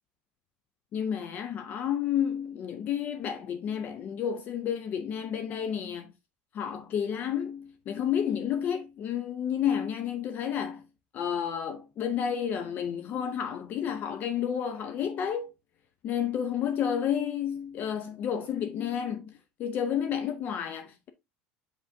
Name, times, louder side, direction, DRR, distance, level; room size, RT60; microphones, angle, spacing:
voice 1, 0.9-6.1 6.5-10.8 11.1-15.5 16.0-19.3 19.6-21.1, left 8 dB, 45° left, 0.6 m, -31 dB
6.4 x 5.7 x 2.6 m
supercardioid pair, 120°, 4 cm